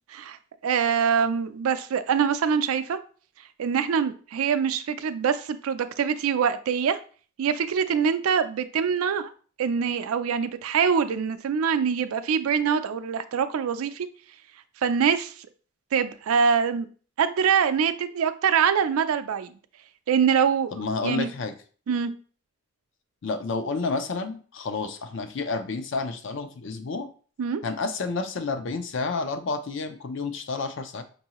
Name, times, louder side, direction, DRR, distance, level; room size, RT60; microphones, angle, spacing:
voice 1, 0.6-3.0 3.6-7.0 7.4-9.3 9.6-14.1 14.8-15.3 15.9-16.9 17.2-19.5 20.1-21.3 21.9-22.1 27.4-27.6, right 7 dB, 90° right, 11 dB, 0.4 m, -24 dB
voice 2, 20.7-21.5 23.2-27.1 27.6-31.0, left 3 dB, 60° left, 9 dB, 0.5 m, -30 dB
5.4 x 2.6 x 2.9 m, 0.41 s
head